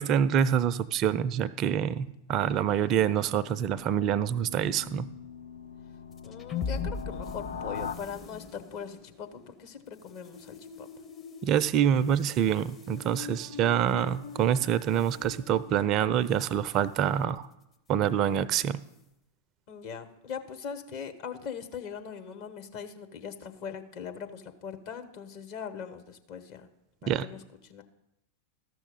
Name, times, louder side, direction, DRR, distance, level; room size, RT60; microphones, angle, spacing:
voice 1, 0.0-5.1 11.4-17.5 17.9-18.8 27.1-27.3, right 9 dB, 35° right, 16 dB, 0.4 m, -26 dB
sound 1, 2.4-8.0, left 6 dB, 70° left, 0.6 m, -42 dB
sound 2, 6.1-16.6, left 5 dB, 25° left, 0.7 m, -41 dB
voice 2, 6.2-10.9 19.7-26.7 27.0-27.4 27.6-27.8, left 7 dB, 45° left, 6 dB, 1.0 m, -41 dB
13.5 x 6.2 x 5.4 m, 0.88 s
figure-of-eight pair, 90°, 0 cm